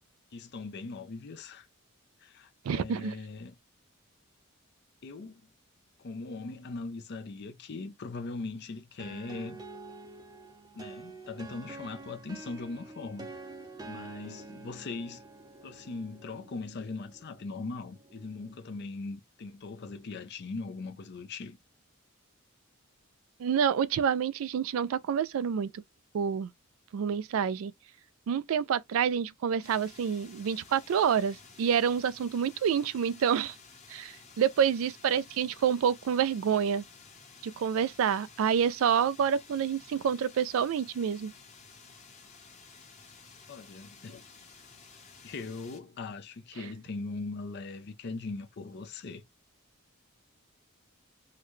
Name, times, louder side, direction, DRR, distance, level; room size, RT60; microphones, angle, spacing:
voice 1, 0.3-1.7 2.2-3.5 5.0-5.5 6.0-9.6 10.7-13.3 13.8-15.2 15.6-21.6 43.5-44.3 45.2-49.2, left 3 dB, 50° left, 0.5 m, -40 dB
voice 2, 2.7-3.1 23.4-25.7 26.1-26.5 26.9-27.7 28.3-33.6 33.9-36.8 37.4-41.3, right 7 dB, 70° right, 0.3 m, -28 dB
sound 1, 9.0-18.6, right 3 dB, 20° right, 0.5 m, -48 dB
sound 2, 29.6-45.8, left 5 dB, 35° left, 1.0 m, -53 dB
3.7 x 2.2 x 3.1 m
head